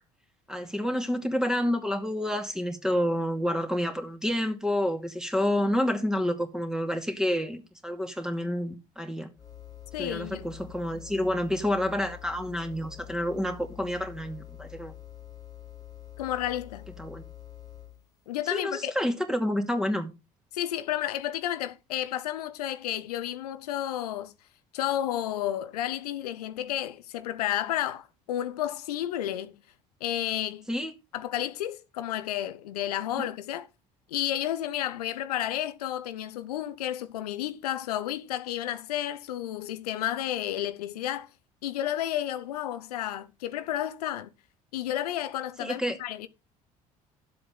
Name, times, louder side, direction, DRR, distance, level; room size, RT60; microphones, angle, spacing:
voice 1, 0.5-9.3 10.0-14.9 17.0-17.2 18.5-20.1 30.7-30.9 33.2-33.3 45.6-46.0, left 1 dB, 5° right, 2.4 m, -29 dB
sound 1, 9.4-18.1, left 12 dB, 20° left, 2.3 m, -46 dB
voice 2, 9.9-10.5 16.2-16.8 18.3-19.0 20.5-24.3 24.7-29.6 30.0-30.7 31.1-33.7 34.1-41.3 41.6-44.3 44.7-46.3, left 12 dB, 75° left, 0.7 m, -31 dB
12.5 x 7.7 x 3.9 m
figure-of-eight pair, 55°, 20 cm